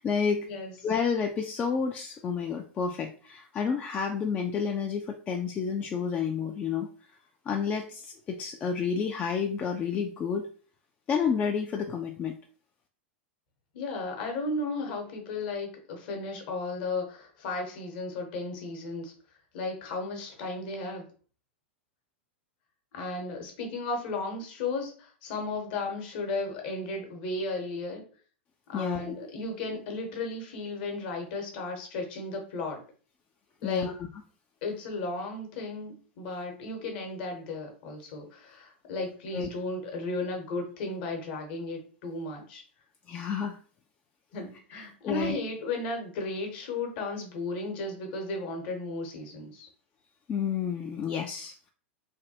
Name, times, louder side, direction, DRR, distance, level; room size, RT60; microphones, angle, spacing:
voice 1, 0.0-0.5 0.8-6.9 7.5-10.5 11.1-12.3 28.7-29.1 33.6-34.0 39.3-39.5 43.1-43.6 44.7-45.4 50.3-51.7, left 6 dB, 25° left, 3 dB, 0.3 m, -30 dB
voice 2, 13.7-19.1 19.5-21.0 22.9-28.0 28.7-32.8 33.6-33.9 34.6-42.6 44.3-49.7, left 2 dB, 50° left, 2 dB, 1.0 m, -34 dB
3.2 x 2.2 x 2.8 m, 0.40 s
figure-of-eight pair, 95°, 6 cm